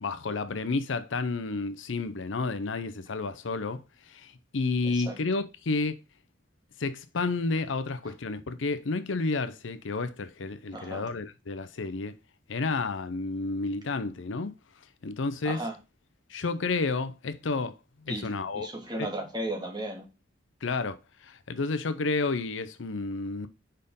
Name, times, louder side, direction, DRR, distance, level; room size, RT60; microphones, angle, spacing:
voice 1, 0.0-3.8 4.1-5.9 6.8-12.1 12.5-14.5 15.0-15.6 16.3-17.7 18.1-18.7 19.0-19.1 20.6-21.0 21.2-23.5, left 3 dB, 90° left, 0.7 m, -31 dB
voice 2, 4.8-5.2 10.7-11.0 15.4-15.8 18.1-20.1, right 1 dB, 20° right, 1.7 m, -35 dB
5.1 x 4.4 x 5.3 m
head